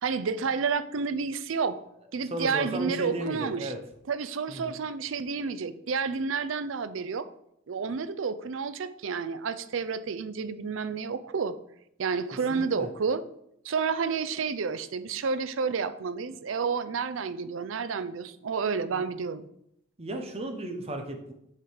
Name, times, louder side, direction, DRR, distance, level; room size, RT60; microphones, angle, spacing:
voice 1, 0.0-1.8 2.1-3.7 4.1-7.3 7.7-11.6 12.0-13.2 13.6-19.5, right 5 dB, 75° right, 13 dB, 0.5 m, -30 dB
voice 2, 2.3-3.8 4.5-4.8 12.5-12.9 18.9-19.0 20.0-21.3, right 1 dB, 30° right, 4 dB, 0.9 m, -34 dB
6.5 x 5.1 x 4.8 m, 0.77 s
head